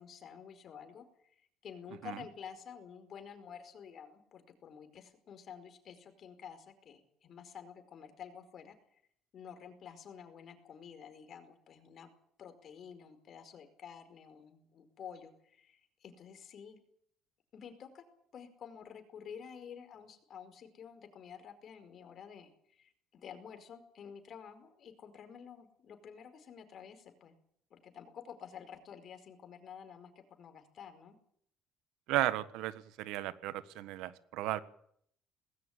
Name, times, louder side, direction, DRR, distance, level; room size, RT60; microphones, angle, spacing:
voice 1, 0.0-9.0 9.3-12.1 12.4-16.8 17.5-18.1 18.3-27.4 27.7-31.2, left 7 dB, 55° left, 9 dB, 4.8 m, -50 dB
voice 2, 32.1-34.6, right 15 dB, 80° right, 15 dB, 1.4 m, -34 dB
19.5 x 17.0 x 9.2 m, 0.66 s
supercardioid pair, 80°, 0 cm